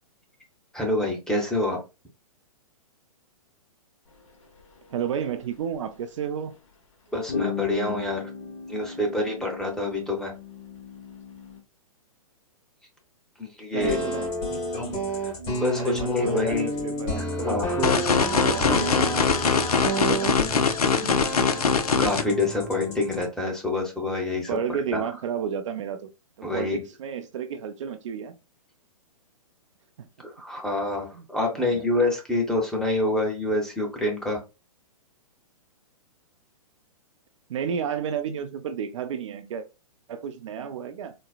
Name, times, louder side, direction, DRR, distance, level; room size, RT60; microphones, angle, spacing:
voice 1, 0.7-1.8 7.1-8.3 8.7-10.3 13.4-14.0 15.2-15.3 15.6-16.8 17.2-17.9 22.0-24.5 24.9-25.0 26.4-26.8 30.2-34.4, left 2 dB, 5° left, 0.8 m, -27 dB
sound 1, 4.1-4.2 4.6-4.8 5.6-6.0 7.3-11.6, left 6 dB, 55° left, 1.0 m, -35 dB
voice 2, 4.9-6.6 13.7-14.3 15.8-19.0 19.6-20.4 21.0-21.3 24.5-26.1 26.4-28.4 30.0-30.1 31.1-31.3 31.5-31.9 37.5-39.7 40.1-41.1, right 7 dB, 55° right, 0.4 m, -32 dB
sound 2, 13.8-23.2, equal, 35° left, 1.8 m, -30 dB
sound 3, 17.8-22.2, left 5 dB, 80° left, 0.5 m, -22 dB
4.0 x 2.1 x 2.4 m
hypercardioid pair, 120°, 19 cm